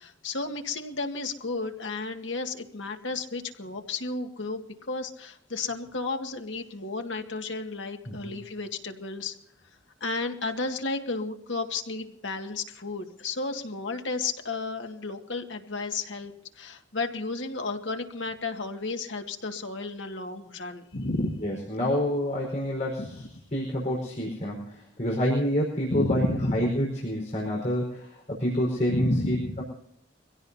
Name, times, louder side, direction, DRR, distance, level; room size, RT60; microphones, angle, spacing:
voice 1, 0.0-4.6 4.9-9.4 10.0-21.4 23.0-23.1 25.9-26.6 28.9-29.5, left 3 dB, 80° left, 4 dB, 2.0 m, -32 dB
voice 2, 21.4-23.2 23.5-29.6, equal, 40° left, -2 dB, 4.8 m, -28 dB
24.5 x 17.0 x 2.8 m, 0.75 s
head